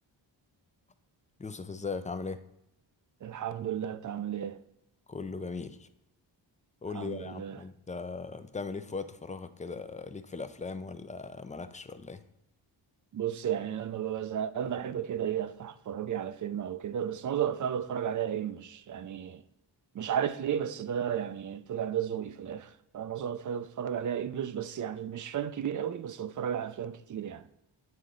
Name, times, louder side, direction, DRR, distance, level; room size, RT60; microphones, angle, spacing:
voice 1, 1.4-2.4 5.1-5.9 6.8-12.2, left 4 dB, 20° left, 0.3 m, -38 dB
voice 2, 3.2-4.6 6.9-7.6 13.1-19.4 19.9-27.4, right 9 dB, 45° right, 0.4 m, -33 dB
8.4 x 3.8 x 3.7 m
cardioid pair, 80°, 46 cm